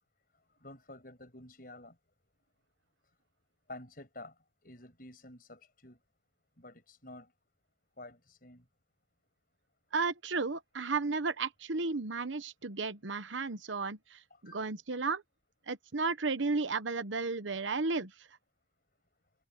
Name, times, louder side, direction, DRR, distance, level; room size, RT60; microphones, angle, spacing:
voice 1, 0.6-1.9 3.7-4.3 4.6-6.0 6.6-7.3 8.0-8.6 14.3-14.6, left 2 dB, 50° left, 6.5 m, -50 dB
voice 2, 9.9-15.2 15.7-18.1, right 4 dB, 80° right, 1.1 m, -33 dB
head